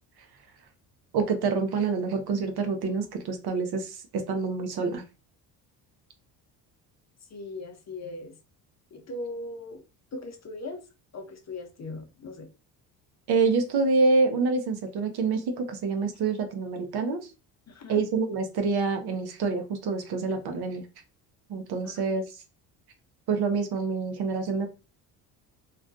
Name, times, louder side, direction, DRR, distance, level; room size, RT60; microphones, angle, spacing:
voice 1, 1.1-5.0 13.3-17.3 17.9-20.9 21.5-22.4 23.3-24.7, right 4 dB, 55° right, 6 dB, 0.7 m, -27 dB
voice 2, 7.3-8.3 8.9-9.8 10.1-10.8 11.1-12.5 17.7-18.0 21.8-22.2, left 2 dB, 35° left, 3 dB, 0.7 m, -39 dB
2.4 x 2.2 x 2.5 m, 0.31 s
supercardioid pair, 70°, 47 cm